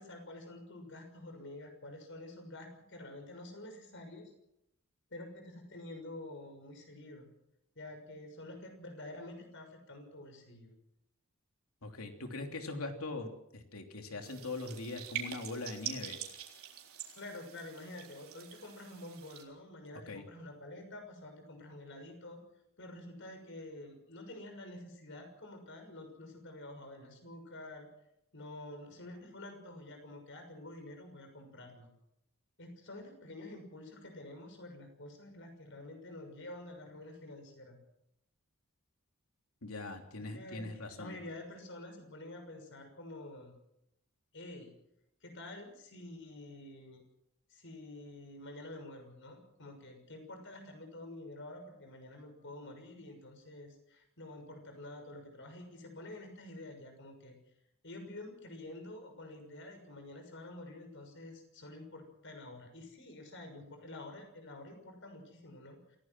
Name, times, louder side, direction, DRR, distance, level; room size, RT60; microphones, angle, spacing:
voice 1, 0.0-4.3 5.1-7.3 7.7-10.8 17.2-22.4 22.8-27.9 28.3-31.9 32.6-37.8 40.3-40.7 41.0-43.5 44.3-44.7 45.2-47.0 47.5-57.4 57.8-66.0, left 1 dB, 60° left, 5 dB, 6.3 m, -48 dB
voice 2, 11.8-16.2 20.1-20.2 39.6-41.2, left 2 dB, 85° left, 4 dB, 3.2 m, -41 dB
sound 1, 14.2-19.4, right 9 dB, 85° right, 3.8 m, -45 dB
27.5 x 17.0 x 6.2 m, 0.81 s
head